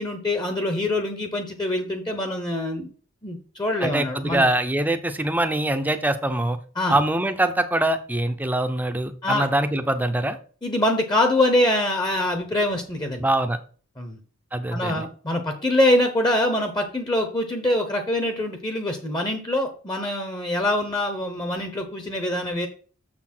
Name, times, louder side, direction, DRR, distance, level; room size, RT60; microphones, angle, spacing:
voice 1, 0.0-2.9 3.2-4.4 6.8-7.0 9.2-9.5 10.6-13.2 14.0-14.2 14.7-22.7, left 1 dB, 20° left, 6 dB, 0.9 m, -24 dB
voice 2, 3.8-6.6 6.9-10.4 13.2-13.6 14.5-15.1, right 1 dB, 10° right, 8 dB, 0.7 m, -23 dB
6.9 x 6.1 x 4.4 m, 0.41 s
head